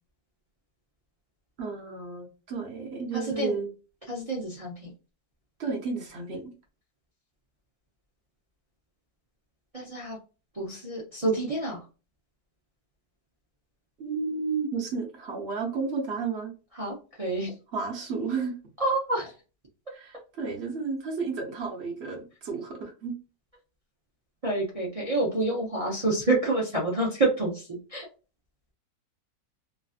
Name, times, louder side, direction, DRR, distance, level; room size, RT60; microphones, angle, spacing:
voice 1, 1.6-3.7 5.6-6.5 14.0-16.5 17.7-18.5 19.9-23.1, right 4 dB, 50° right, 1 dB, 0.9 m, -32 dB
voice 2, 3.1-3.5 4.1-4.9 9.7-10.2 10.5-11.8 16.7-17.5 18.8-19.3 24.4-28.1, right 2 dB, 70° right, -4 dB, 0.3 m, -28 dB
3.2 x 2.5 x 2.4 m, 0.34 s
omnidirectional pair, 1.9 m